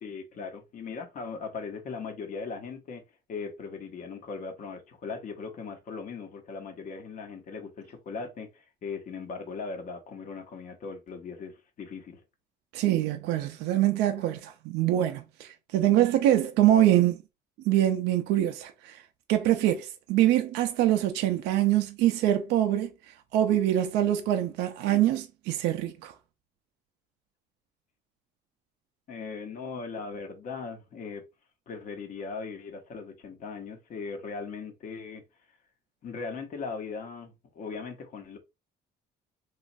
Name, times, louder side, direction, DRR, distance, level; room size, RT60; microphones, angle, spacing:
voice 1, 0.0-3.0 3.3-12.2 29.1-31.2 31.7-35.2 36.0-38.4, left 4 dB, 50° left, 0.9 m, -39 dB
voice 2, 12.7-17.2 17.7-19.0 19.3-22.9 23.3-26.1, right 12 dB, 85° right, 0.4 m, -24 dB
3.0 x 2.4 x 2.6 m
cardioid pair, 110°, 17 cm